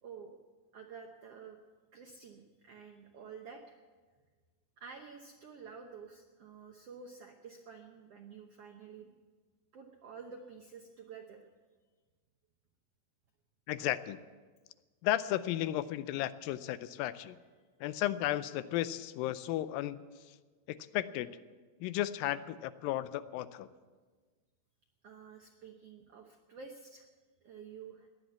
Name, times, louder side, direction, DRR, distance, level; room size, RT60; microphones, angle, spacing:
voice 1, 0.0-0.4 0.7-1.6 1.9-3.7 4.8-9.1 9.7-11.4 25.0-27.1 27.4-28.1, right 5 dB, 75° right, 3 dB, 1.4 m, -50 dB
voice 2, 13.7-14.2 15.0-17.4 17.8-20.4 20.7-21.3 21.8-23.7, left 13 dB, 85° left, 14 dB, 2.3 m, -34 dB
16.5 x 11.0 x 8.1 m, 1.4 s
omnidirectional pair, 4.1 m